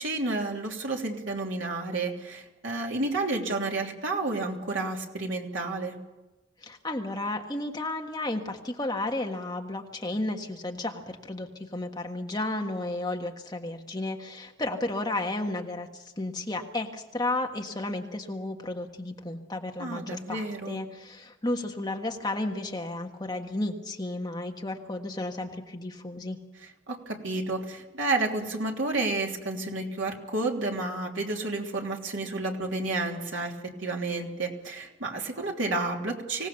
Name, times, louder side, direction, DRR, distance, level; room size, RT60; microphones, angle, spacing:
voice 1, 0.0-6.0 19.8-20.8 26.9-33.5 33.8-36.5, right 2 dB, 70° right, 1 dB, 3.2 m, -31 dB
voice 2, 6.6-26.4, left 2 dB, 20° left, 2 dB, 1.5 m, -33 dB
25.0 x 17.5 x 7.0 m, 1.1 s
head